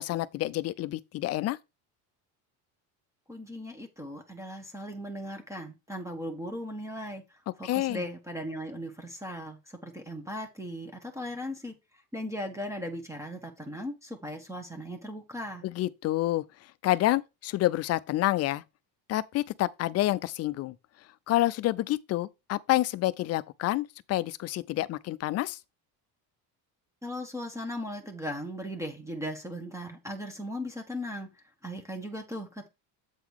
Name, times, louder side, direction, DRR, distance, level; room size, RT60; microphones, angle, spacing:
voice 1, 0.0-1.6 7.6-8.0 15.6-16.4 16.8-18.6 19.1-20.8 21.3-25.6, left 16 dB, 40° left, 0.4 m, -28 dB
voice 2, 3.3-7.2 7.6-11.7 12.1-15.6 27.0-31.3 31.6-32.7, equal, 5° right, 0.9 m, -38 dB
8.2 x 3.9 x 4.6 m
cardioid pair, 150°, 40 cm